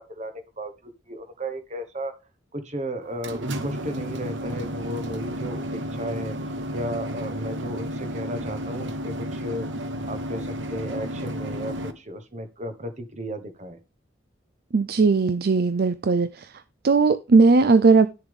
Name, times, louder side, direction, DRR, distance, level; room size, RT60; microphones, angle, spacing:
voice 1, 0.0-2.1 2.5-9.7 10.1-13.8, equal, 40° right, 1.4 m, -34 dB
sound 1, 3.0-11.9, equal, 75° right, 1.1 m, -32 dB
voice 2, 14.7-16.5 16.8-18.1, right 4 dB, 55° right, 0.5 m, -18 dB
11.5 x 7.0 x 3.6 m
head